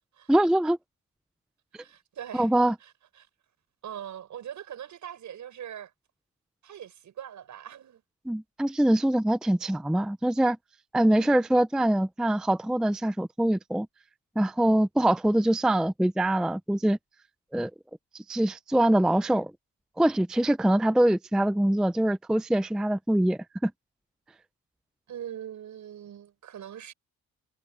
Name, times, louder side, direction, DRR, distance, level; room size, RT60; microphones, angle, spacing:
voice 1, 0.3-0.8 2.3-2.8 8.3-10.6 10.9-13.9 14.4-17.0 17.5-17.7 18.3-19.5 20.0-23.7, right 1 dB, ahead, 0.4 m, -24 dB
voice 2, 1.8-2.5 3.2-3.3 3.8-5.9 6.6-8.0 11.1-11.4 25.1-26.9, right 10 dB, 65° right, 7.0 m, -41 dB
cardioid pair, 120°, 32 cm